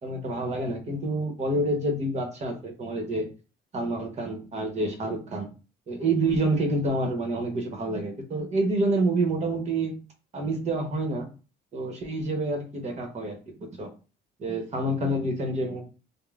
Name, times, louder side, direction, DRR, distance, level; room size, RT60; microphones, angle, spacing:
voice 1, 0.0-3.3 3.7-5.5 5.9-10.0 10.3-11.3 11.7-13.9 14.4-15.8, right 2 dB, 40° right, 3 dB, 1.1 m, -28 dB
5.2 x 2.2 x 2.5 m, 0.34 s
cardioid pair, 110°, 17 cm